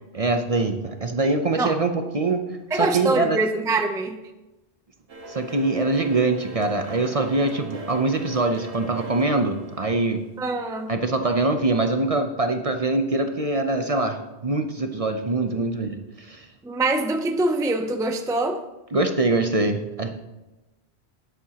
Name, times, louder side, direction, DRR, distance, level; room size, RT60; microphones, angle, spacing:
voice 1, 0.1-2.4 2.7-3.4 5.3-10.2 10.9-16.4 18.9-20.2, right 2 dB, 40° right, 6 dB, 0.7 m, -23 dB
voice 2, 2.7-4.2 10.4-10.9 16.6-18.6, right 2 dB, 5° right, 6 dB, 0.5 m, -24 dB
sound 1, 5.1-10.9, right 1 dB, 75° right, 1.5 m, -40 dB
12.5 x 10.0 x 2.9 m, 1.1 s
omnidirectional pair, 1.1 m